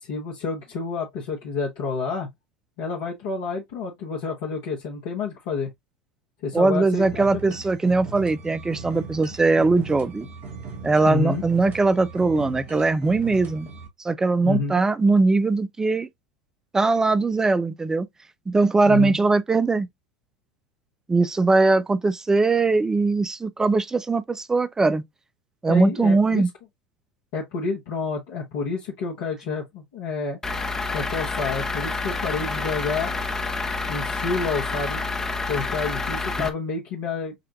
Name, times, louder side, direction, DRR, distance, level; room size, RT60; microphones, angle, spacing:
voice 1, 0.0-2.3 2.8-5.7 6.4-7.4 11.1-11.4 14.4-14.8 18.8-19.2 25.7-26.4 27.3-30.4 30.9-33.1 33.9-35.0 35.5-37.3, left 4 dB, 60° left, 1.2 m, -29 dB
voice 2, 6.5-10.3 10.8-13.7 14.0-16.1 16.7-18.1 18.5-19.9 21.1-25.0 25.6-26.5 36.4-36.5, right 3 dB, 15° right, 0.5 m, -20 dB
sound 1, 7.0-13.9, right 4 dB, 40° right, 2.1 m, -38 dB
Truck / Idling, 30.4-36.5, left 3 dB, 15° left, 0.9 m, -28 dB
6.6 x 2.5 x 2.5 m
figure-of-eight pair, 75°, 4 cm